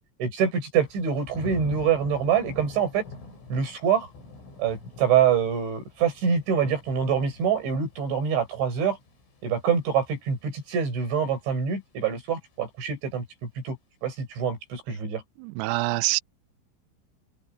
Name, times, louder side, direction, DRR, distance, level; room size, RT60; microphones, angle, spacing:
voice 1, 0.2-3.1 3.5-4.1 4.6-9.0 9.4-13.8 14.0-15.2, right 7 dB, 70° right, 8.7 m, -25 dB
Thunder / Rain, 0.8-11.8 12.2-12.6, left 3 dB, 85° left, 10.5 m, -46 dB
voice 2, 15.4-16.2, right 23 dB, 90° right, 2.4 m, -25 dB
open air
omnidirectional pair, 5.6 m